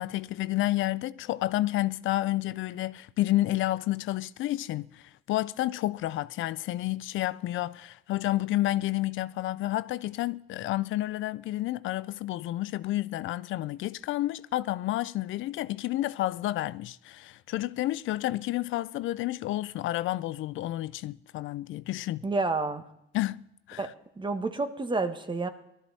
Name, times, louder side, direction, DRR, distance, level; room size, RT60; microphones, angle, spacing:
voice 1, 0.0-22.2 23.1-23.9, left 15 dB, 80° left, 0.4 m, -30 dB
voice 2, 22.2-22.8 23.8-25.5, right 3 dB, 25° right, 1.4 m, -30 dB
19.0 x 12.5 x 4.1 m
cardioid pair, 90°, 20 cm